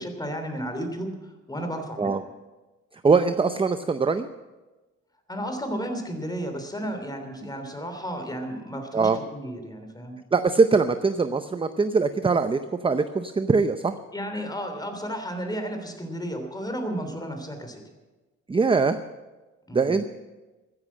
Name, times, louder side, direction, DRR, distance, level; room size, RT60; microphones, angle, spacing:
voice 1, 0.0-2.2 5.3-10.2 14.1-17.8 19.7-20.0, equal, 15° left, 6 dB, 3.1 m, -33 dB
voice 2, 3.0-4.3 8.9-9.2 10.3-13.9 18.5-19.0 19.7-20.1, right 4 dB, 20° right, 10 dB, 0.6 m, -22 dB
15.0 x 10.5 x 7.4 m, 1.2 s
cardioid pair, 90°, 30 cm